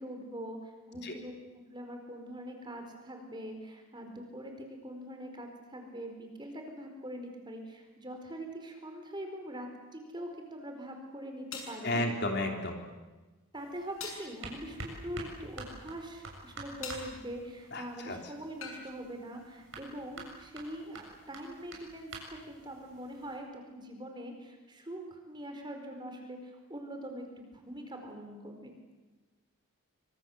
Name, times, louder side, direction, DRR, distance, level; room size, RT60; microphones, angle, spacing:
voice 1, 0.0-1.3 1.7-9.7 9.9-12.0 13.5-28.7, right 1 dB, 20° right, 4 dB, 4.7 m, -43 dB
sound 1, 10.4-10.5 11.5-11.8 14.0-14.3 16.8-17.1 18.6-18.8, left 5 dB, 65° left, 7.1 m, -41 dB
voice 2, 11.8-12.8 17.7-18.2, left 1 dB, 50° left, 3 dB, 3.5 m, -32 dB
sound 2, 13.5-23.4, right 2 dB, 55° right, 7.3 m, -48 dB
26.0 x 25.5 x 8.2 m, 1.2 s
head